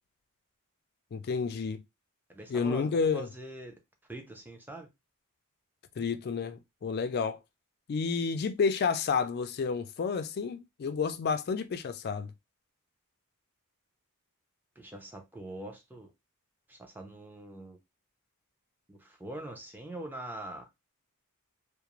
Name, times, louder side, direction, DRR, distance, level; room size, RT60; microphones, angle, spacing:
voice 1, 1.1-1.8 2.5-3.3 6.0-7.4 7.9-12.3, left 5 dB, 45° left, 0.3 m, -30 dB
voice 2, 2.3-3.7 4.1-4.9 14.8-16.1 16.7-17.8 18.9-20.7, right 1 dB, 10° right, 0.5 m, -43 dB
2.4 x 2.0 x 2.9 m
head